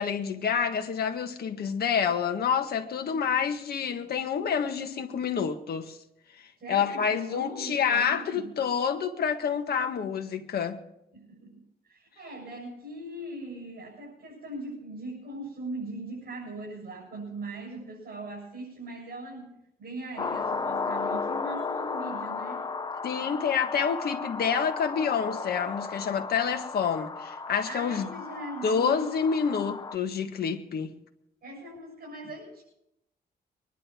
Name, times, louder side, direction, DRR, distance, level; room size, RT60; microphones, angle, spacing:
voice 1, 0.0-6.0 6.7-10.8 23.0-28.1 28.6-30.9, left 7 dB, 65° left, 1.6 m, -28 dB
voice 2, 6.6-8.5 11.1-22.7 27.6-29.2 31.4-32.6, right 2 dB, 60° right, 7.0 m, -40 dB
sound 1, 20.2-30.0, left 4 dB, 25° left, 0.6 m, -34 dB
24.0 x 11.0 x 4.5 m
cardioid pair, 115°, 17 cm